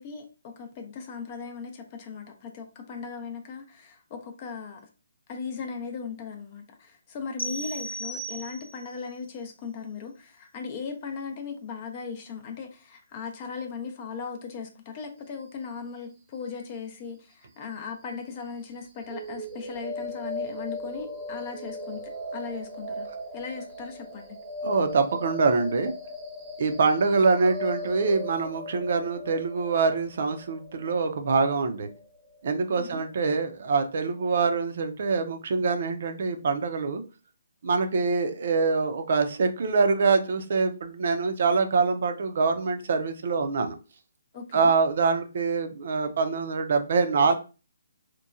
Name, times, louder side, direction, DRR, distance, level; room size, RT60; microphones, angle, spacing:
voice 1, 0.0-4.8 5.3-22.0 22.3-23.1 23.3-24.4 32.8-33.0 44.3-44.7, left 5 dB, 35° left, 0.5 m, -38 dB
sound 1, 7.4-8.9, right 1 dB, 80° left, 0.6 m, -35 dB
sound 2, 19.0-33.0, left 1 dB, 15° right, 0.8 m, -38 dB
voice 2, 24.6-25.9 26.6-31.9 32.4-37.0 37.6-43.8 44.5-47.3, right 4 dB, 55° right, 0.5 m, -24 dB
2.9 x 2.1 x 2.4 m
figure-of-eight pair, 145°, 0 cm